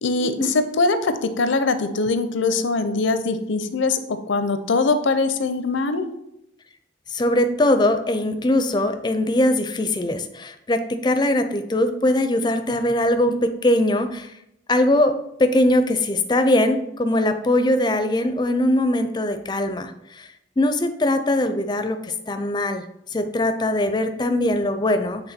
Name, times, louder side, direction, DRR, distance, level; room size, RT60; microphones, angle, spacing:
voice 1, 0.0-6.1, left 3 dB, 80° left, 10 dB, 0.6 m, -22 dB
voice 2, 7.1-14.3 14.7-20.3 20.6-22.8 23.1-25.3, left 1 dB, 20° left, 9 dB, 0.4 m, -21 dB
8.0 x 3.4 x 4.3 m, 0.83 s
head